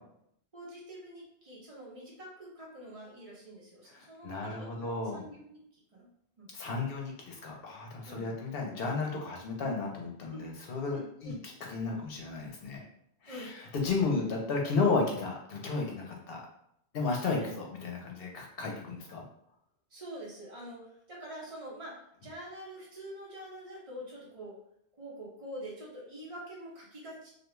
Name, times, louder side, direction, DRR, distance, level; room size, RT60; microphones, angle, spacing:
voice 1, 0.5-6.1 6.4-6.5 8.1-8.3 10.3-10.4 10.9-11.4 13.3-13.5 17.4-17.6 19.9-24.6 25.0-27.3, right 1 dB, 35° right, -4 dB, 0.8 m, -46 dB
voice 2, 3.9-5.2 6.5-12.8 13.2-16.4 16.9-19.2, left 4 dB, 65° left, 0 dB, 0.8 m, -33 dB
2.4 x 2.2 x 3.0 m, 0.73 s
omnidirectional pair, 1.1 m